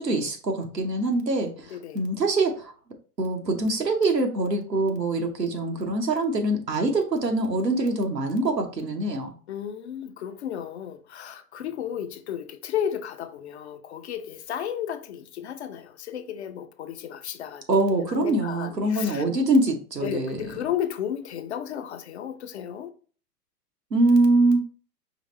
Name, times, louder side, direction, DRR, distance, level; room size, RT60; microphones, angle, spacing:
voice 1, 0.0-1.5 1.9-2.7 3.2-9.3 17.7-20.5 23.9-24.6, right 2 dB, 85° right, 1.0 m, -24 dB
voice 2, 1.7-2.0 9.5-19.2 20.0-22.9, left 9 dB, 45° left, 0.5 m, -33 dB
5.0 x 3.2 x 3.0 m
figure-of-eight pair, 105°, 48 cm